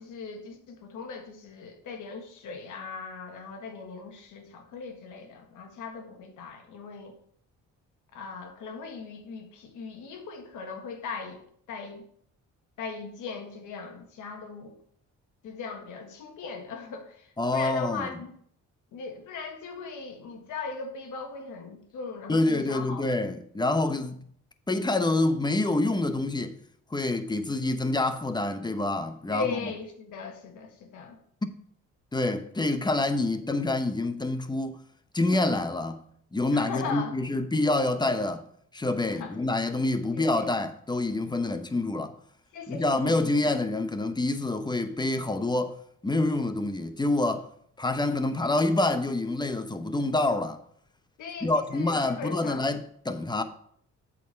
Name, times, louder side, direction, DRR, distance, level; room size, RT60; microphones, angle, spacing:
voice 1, 0.0-7.1 8.1-11.4 11.7-12.0 12.8-14.8 15.4-18.3 18.9-23.1 29.3-31.2 36.5-37.1 39.1-39.3 40.1-40.5 42.5-43.8 51.2-52.7, left 4 dB, 80° left, 1.6 m, -39 dB
voice 2, 17.4-18.1 22.3-24.3 24.7-26.6 26.9-29.7 31.4-31.5 32.1-34.8 35.1-38.5 38.7-42.2 42.7-45.8 46.0-47.5 47.8-50.6 51.4-53.4, left 2 dB, 15° left, 0.8 m, -27 dB
7.9 x 4.8 x 5.6 m
cardioid pair, 90°, 30 cm